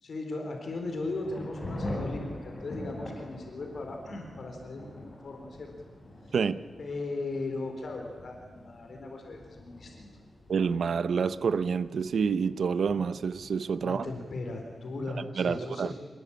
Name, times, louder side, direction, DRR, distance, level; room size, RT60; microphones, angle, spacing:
voice 1, 0.0-5.7 6.2-6.4 6.8-10.1 13.8-15.9, left 2 dB, 55° left, 4.0 m, -37 dB
Thunder / Rain, 0.7-15.1, left 1 dB, 20° left, 6.8 m, -44 dB
voice 2, 10.5-14.0 15.4-15.9, right 6 dB, 65° right, 0.8 m, -28 dB
26.5 x 21.0 x 8.7 m
wide cardioid pair, 165°, 0 cm